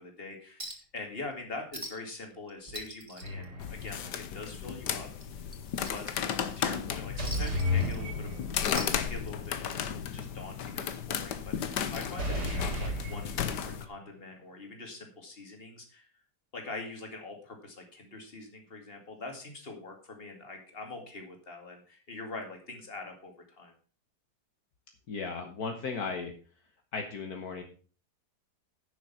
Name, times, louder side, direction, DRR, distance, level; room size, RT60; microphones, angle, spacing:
voice 1, 0.0-5.1 5.9-9.7 10.1-16.1 16.5-23.7, left 3 dB, 35° left, 3 dB, 2.5 m, -43 dB
Chink clink, 0.6-1.0 1.3-1.4 1.7-2.2 2.5-4.2 4.5-4.7 5.2-6.6 7.2-8.3 8.6-9.6 10.7-10.8, right 1 dB, 20° right, 1.6 m, -43 dB
sound 1, 3.2-3.9 7.2-8.7 12.2-13.8, left 2 dB, 80° right, 4.5 m, -32 dB
sound 2, 3.6-13.9, left 8 dB, 85° left, 1.5 m, -34 dB
voice 2, 25.1-26.3 26.9-27.6, left 4 dB, 65° left, 4 dB, 1.7 m, -35 dB
10.5 x 6.5 x 5.8 m, 0.39 s
omnidirectional pair, 1.8 m